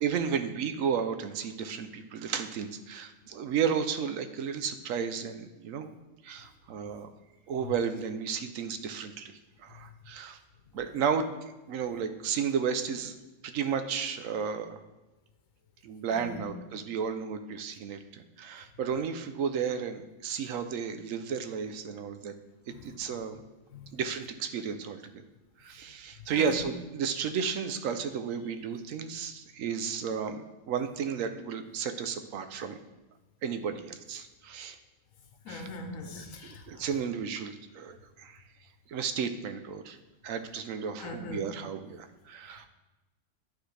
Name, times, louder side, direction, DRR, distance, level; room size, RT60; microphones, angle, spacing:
voice 1, 0.0-5.9 6.2-7.1 7.5-10.4 10.7-11.3 11.7-13.1 13.4-14.8 15.8-22.3 22.8-23.4 23.9-25.2 25.6-32.8 33.4-34.8 35.5-35.7 36.1-38.4 38.9-40.0 40.2-42.7, right 7 dB, 85° right, 8 dB, 1.0 m, -33 dB
voice 2, 16.1-16.4 22.7-22.8 23.7-24.0 26.3-26.6 35.4-36.9 41.0-41.4, left 3 dB, 85° left, 5 dB, 1.2 m, -41 dB
11.5 x 4.1 x 3.2 m, 1.1 s
omnidirectional pair, 1.4 m